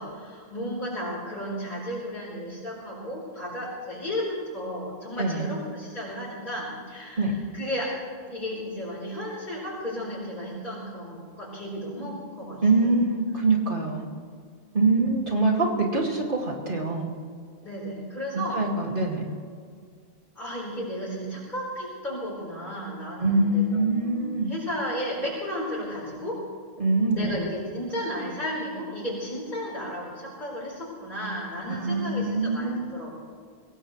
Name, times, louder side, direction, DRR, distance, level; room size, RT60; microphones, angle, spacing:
voice 1, 0.0-7.9 8.3-13.0 17.6-18.6 20.3-26.4 27.1-33.1, equal, 50° left, -8 dB, 4.6 m, -34 dB
voice 2, 5.2-5.5 7.2-7.3 12.6-14.1 14.7-17.1 18.5-19.3 23.2-24.5 26.8-27.4 31.8-32.9, right 2 dB, 55° right, -1 dB, 2.6 m, -24 dB
24.5 x 17.5 x 3.3 m, 2.1 s
omnidirectional pair, 1.0 m